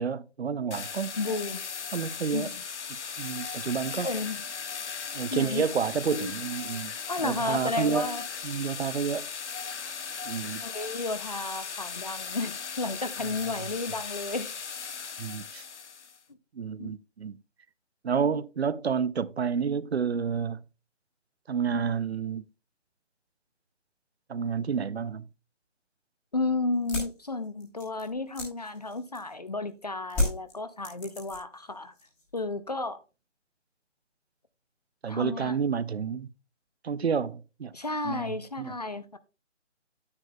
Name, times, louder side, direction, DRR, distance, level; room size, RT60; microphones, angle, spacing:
voice 1, 0.0-1.1 1.9-2.5 3.2-4.1 5.1-6.9 7.2-8.1 8.4-9.3 10.3-10.7 13.3-13.4 15.2-15.6 16.5-17.4 18.0-20.6 21.5-22.4 24.3-25.3 35.0-36.3 36.8-37.7 38.0-38.7, right 6 dB, 60° right, 0.6 m, -30 dB
sound 1, 0.7-16.2, left 6 dB, 70° left, 0.8 m, -37 dB
voice 2, 1.1-1.6 2.3-2.5 4.0-4.4 5.3-5.6 6.1-6.3 7.1-8.2 10.6-14.5 16.8-16.9 26.3-31.9 32.3-33.0 35.1-35.6 37.7-39.2, left 3 dB, 35° left, 0.5 m, -32 dB
sound 2, 26.7-29.5 30.1-31.7 31.9-32.5, left 1 dB, 5° left, 1.4 m, -33 dB
9.6 x 8.8 x 2.3 m
figure-of-eight pair, 155°, 36 cm